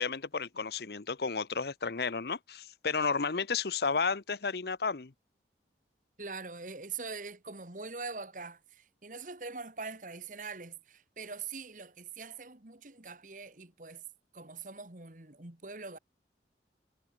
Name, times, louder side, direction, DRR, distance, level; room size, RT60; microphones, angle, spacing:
voice 1, 0.0-5.1, left 5 dB, 65° left, 0.8 m, -32 dB
voice 2, 6.2-14.0 14.3-16.0, right 4 dB, 45° right, 2.1 m, -43 dB
head